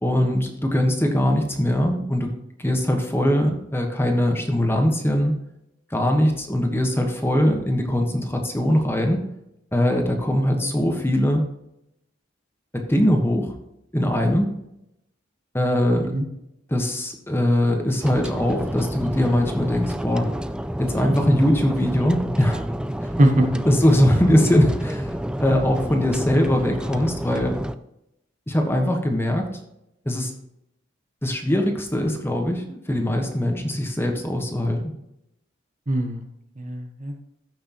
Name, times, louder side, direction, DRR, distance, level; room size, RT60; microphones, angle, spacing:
voice 1, 0.0-2.3 2.6-5.3 5.9-9.2 9.7-11.4 12.9-13.5 13.9-14.5 15.5-16.1 16.7-20.3 20.8-22.6 23.0-23.1 23.6-25.1 25.4-27.6 28.5-29.5 30.0-30.3 31.2-34.9, equal, 15° left, 3 dB, 1.4 m, -21 dB
sound 1, 18.0-27.8, equal, 5° right, 0.4 m, -29 dB
voice 2, 35.9-36.3 36.6-37.2, right 1 dB, 40° right, 4 dB, 1.2 m, -22 dB
15.0 x 6.4 x 3.1 m, 0.83 s
head